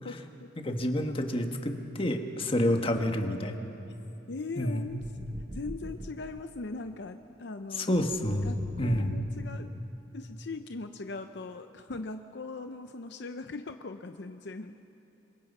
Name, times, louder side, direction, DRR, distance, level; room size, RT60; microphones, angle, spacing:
voice 1, 0.0-0.5 2.6-3.1 4.3-5.0 5.5-7.9 8.4-8.6 8.8-9.7 10.1-14.7, left 3 dB, 65° left, 8 dB, 0.7 m, -40 dB
voice 2, 0.6-3.6 4.6-4.8 7.7-9.1, left 1 dB, 30° left, 4 dB, 1.5 m, -29 dB
sound 1, 4.8-6.4 7.9-9.8, right 1 dB, 30° right, 0.9 m, -45 dB
27.0 x 24.0 x 5.5 m, 2.9 s
head